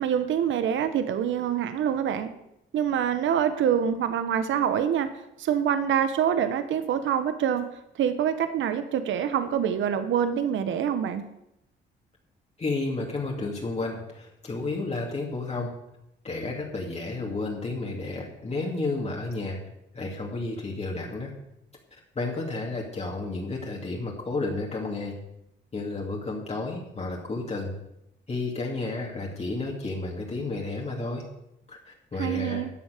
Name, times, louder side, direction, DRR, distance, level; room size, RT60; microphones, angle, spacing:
voice 1, 0.0-2.3 2.7-5.1 5.4-7.6 7.9-11.2 32.2-32.7, right 9 dB, 75° right, 10 dB, 1.1 m, -25 dB
voice 2, 12.6-15.7 16.2-19.6 19.9-21.3 22.1-25.2 25.7-27.7 28.3-31.2 31.7-32.6, left 3 dB, 35° left, -1 dB, 2.7 m, -31 dB
13.5 x 8.3 x 6.6 m, 0.82 s
cardioid pair, 90°, 20 cm